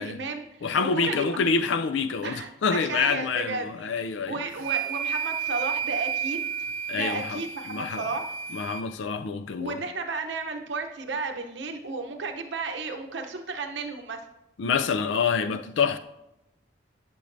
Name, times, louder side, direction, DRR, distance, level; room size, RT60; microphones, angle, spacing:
voice 1, 0.0-1.4 2.2-3.7 4.3-6.4 6.9-8.3 9.6-14.2, right 3 dB, 70° right, 0.8 m, -33 dB
voice 2, 0.6-4.4 6.9-7.4 7.7-8.1 8.5-9.8 14.6-16.0, left 5 dB, 75° left, 0.4 m, -27 dB
sound 1, 4.6-8.8, right 8 dB, 90° right, 0.4 m, -31 dB
11.5 x 6.1 x 2.7 m
head